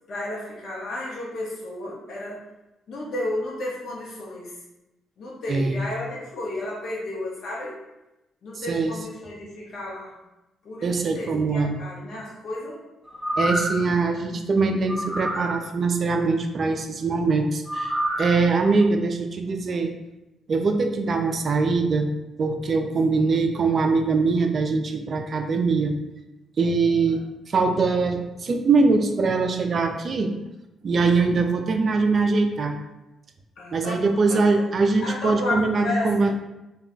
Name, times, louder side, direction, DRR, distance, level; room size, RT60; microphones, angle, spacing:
voice 1, 0.1-2.4 2.9-4.5 5.2-7.7 8.4-10.1 10.6-12.8 23.1-23.4 27.1-27.2 33.6-34.7 35.0-36.1, left 2 dB, 60° left, -5 dB, 0.8 m, -32 dB
voice 2, 5.5-5.8 8.7-8.9 10.8-11.8 13.4-19.9 20.5-22.1 22.4-25.9 26.6-27.2 27.5-30.3 30.8-32.8 33.7-36.3, right 4 dB, 45° right, 5 dB, 0.3 m, -22 dB
sound 1, 13.1-13.9 14.9-15.6 17.7-18.3 18.8-18.9, equal, ahead, 0.7 m, -27 dB
2.3 x 2.1 x 3.7 m, 0.96 s
cardioid pair, 90°, 0 cm